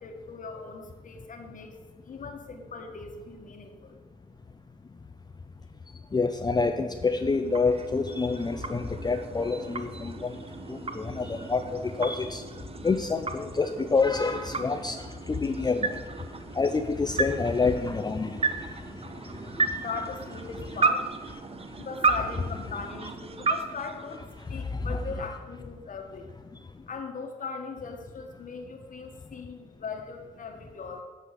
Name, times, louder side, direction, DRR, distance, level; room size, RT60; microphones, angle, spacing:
voice 1, 0.0-4.0 19.8-21.1 21.8-26.4 26.9-31.0, left 4 dB, 55° left, 4 dB, 1.5 m, -39 dB
voice 2, 6.1-10.4 10.7-12.4 12.8-16.0 16.5-19.0 19.6-19.8 24.5-25.0, left 4 dB, 25° left, 6 dB, 0.6 m, -28 dB
sound 1, 7.0-24.8, right 4 dB, 35° right, 0.8 m, -34 dB
8.4 x 4.8 x 6.7 m, 1.4 s
supercardioid pair, 55°, 17 cm